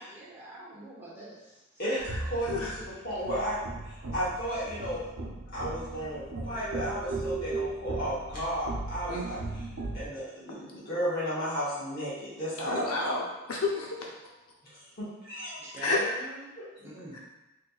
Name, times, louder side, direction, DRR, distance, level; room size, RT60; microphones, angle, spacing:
voice 1, 0.1-1.6 15.6-16.4 16.8-17.2, right 1 dB, 10° right, -7 dB, 0.8 m, -43 dB
voice 2, 1.8-2.7 3.0-3.6 3.8-5.0 5.5-9.4 9.9-13.1 15.0-15.9 16.6-16.7, equal, 45° left, -9 dB, 1.1 m, -33 dB
sound 1, 2.0-10.1, right 2 dB, 85° right, 0.6 m, -37 dB
voice 3, 12.6-13.2 13.5-14.0 15.8-16.0 17.1-17.2, left 3 dB, 85° left, -2 dB, 0.7 m, -30 dB
4.1 x 2.7 x 2.3 m, 1.0 s
head